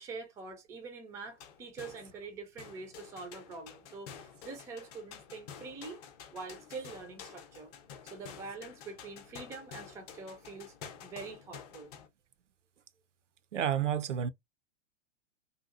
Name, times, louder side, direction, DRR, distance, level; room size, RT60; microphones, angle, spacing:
voice 1, 0.0-6.0 6.3-7.7 8.0-10.7 11.0-11.9, right 4 dB, 10° right, 0.4 m, -45 dB
sound 1, 1.2-2.3 2.6-12.1, left 7 dB, 35° left, 0.6 m, -50 dB
voice 2, 13.5-14.3, right 9 dB, 75° right, 0.5 m, -30 dB
2.7 x 2.3 x 2.4 m
figure-of-eight pair, 100°, 37 cm